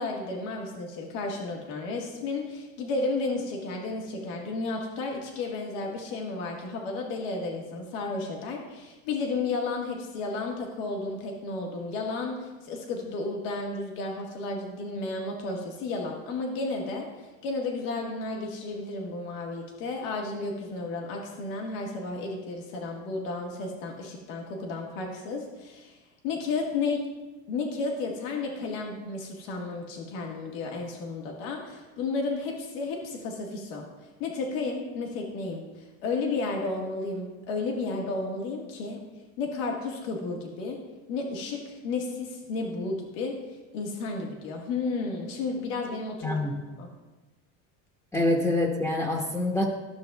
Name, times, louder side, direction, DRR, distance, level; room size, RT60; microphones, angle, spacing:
voice 1, 0.0-27.1 27.5-33.9 34.2-39.0 39.4-40.8 41.1-46.4 46.8-46.9, left 3 dB, 80° left, 0 dB, 1.5 m, -32 dB
voice 2, 46.2-46.6 48.1-49.6, left 1 dB, 5° left, -2 dB, 1.0 m, -25 dB
13.5 x 6.3 x 2.3 m, 1.2 s
supercardioid pair, 115°, 38 cm